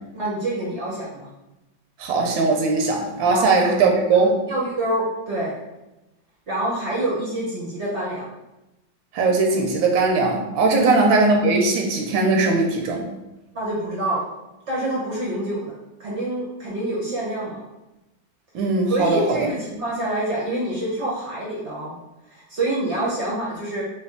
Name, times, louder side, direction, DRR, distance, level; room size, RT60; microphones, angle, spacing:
voice 1, 0.1-1.3 3.3-3.7 4.2-5.5 6.5-8.3 10.8-10.9 13.5-14.2 14.7-15.7 16.0-17.6 18.6-22.0 22.3-23.8, right 1 dB, 60° right, -5 dB, 0.7 m, -27 dB
voice 2, 2.0-4.4 9.1-13.0 18.5-19.5, right 3 dB, 85° right, 1 dB, 1.3 m, -19 dB
3.2 x 2.5 x 3.6 m, 0.98 s
omnidirectional pair, 2.0 m